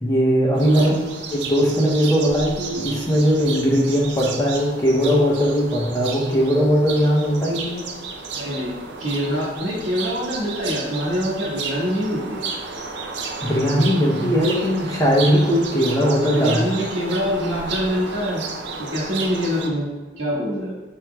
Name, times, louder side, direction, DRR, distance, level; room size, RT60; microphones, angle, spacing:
voice 1, 0.0-1.0 1.3-7.9 13.4-16.6, equal, 20° left, -4 dB, 0.6 m, -19 dB
sound 1, 0.5-19.7, right 4 dB, 60° right, 0.5 m, -32 dB
voice 2, 8.3-12.4 16.0-18.4 18.9-19.9 20.2-20.7, equal, 85° right, -5 dB, 1.4 m, -25 dB
4.5 x 3.7 x 2.2 m, 1.2 s
head